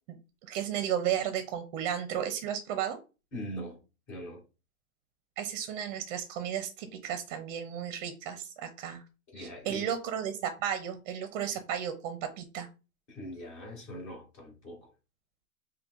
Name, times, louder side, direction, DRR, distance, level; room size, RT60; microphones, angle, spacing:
voice 1, 0.4-3.0 5.4-9.0 9.4-12.7, right 9 dB, 35° right, 0.6 m, -34 dB
voice 2, 3.3-3.8 4.1-4.4 9.3-9.9 13.1-14.9, equal, 35° left, 2.2 m, -41 dB
5.3 x 2.3 x 2.4 m
hypercardioid pair, 125°, 44 cm